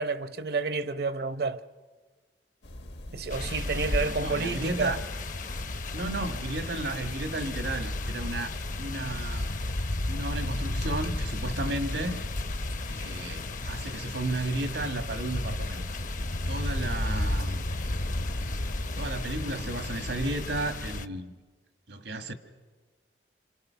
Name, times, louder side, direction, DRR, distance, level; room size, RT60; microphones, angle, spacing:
voice 1, 0.0-1.6 3.1-5.0, right 4 dB, 60° right, 0.8 m, -30 dB
sound 1, 2.6-20.0, left 1 dB, 70° left, 1.1 m, -42 dB
sound 2, 3.3-21.1, left 2 dB, 45° left, 0.7 m, -33 dB
voice 2, 4.2-5.0 5.9-9.5 10.1-12.2 12.9-15.8 16.2-17.6 18.9-21.3 21.9-22.3, right 2 dB, 85° right, 1.8 m, -33 dB
28.5 x 27.0 x 5.8 m
head